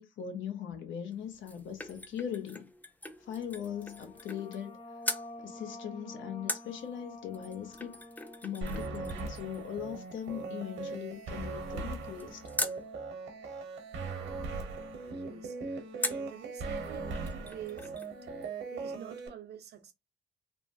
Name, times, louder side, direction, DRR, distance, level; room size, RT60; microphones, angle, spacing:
voice 1, 0.0-2.7 3.2-4.8 5.4-8.0 8.4-12.4, left 9 dB, 70° left, 0.7 m, -40 dB
sound 1, 1.1-4.7 5.0-5.3 6.5-12.8 16.0-16.4 16.8-16.9 17.1-18.1 18.4-18.5, left 1 dB, 10° left, 0.4 m, -41 dB
sound 2, 3.3-10.5, left 1 dB, 30° left, 1.1 m, -50 dB
sound 3, 8.6-19.3, right 3 dB, 70° right, 1.0 m, -39 dB
voice 2, 15.0-17.9 18.7-19.9, right 10 dB, 55° right, 0.6 m, -47 dB
3.1 x 2.0 x 2.5 m
cardioid pair, 90°, 20 cm